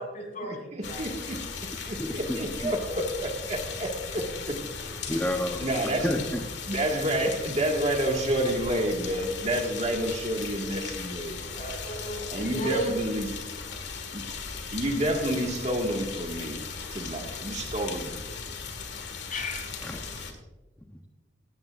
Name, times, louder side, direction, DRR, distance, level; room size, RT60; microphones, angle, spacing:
voice 1, 0.0-1.0 11.5-13.0 19.3-19.6, equal, 45° left, 1 dB, 4.5 m, -34 dB
voice 2, 0.7-1.4 1.8-4.6 5.1-5.2 5.6-6.1 6.7-12.0 12.3-13.4 14.1-14.2 14.7-16.6 16.9-18.1, right 1 dB, 35° right, 1 dB, 1.9 m, -29 dB
sound 1, 0.8-20.3, left 5 dB, 65° left, 1.9 m, -37 dB
voice 3, 2.0-2.4 2.6-2.7 5.1-6.4 19.8-20.3, left 1 dB, 10° left, 2 dB, 0.9 m, -31 dB
17.5 x 15.5 x 2.6 m, 1.1 s
head